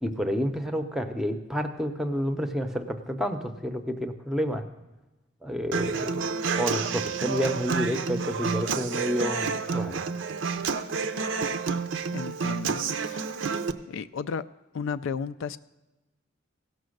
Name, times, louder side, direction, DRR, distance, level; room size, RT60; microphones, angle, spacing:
voice 1, 0.0-4.6 5.4-6.2 6.5-10.0, equal, ahead, 7 dB, 0.6 m, -29 dB
Human voice / Acoustic guitar, 5.7-13.7, right 5 dB, 65° right, 0.5 m, -29 dB
voice 2, 12.1-13.3 13.9-14.5 14.7-15.6, left 6 dB, 70° left, 13 dB, 0.3 m, -34 dB
16.5 x 6.1 x 6.4 m, 1.1 s
head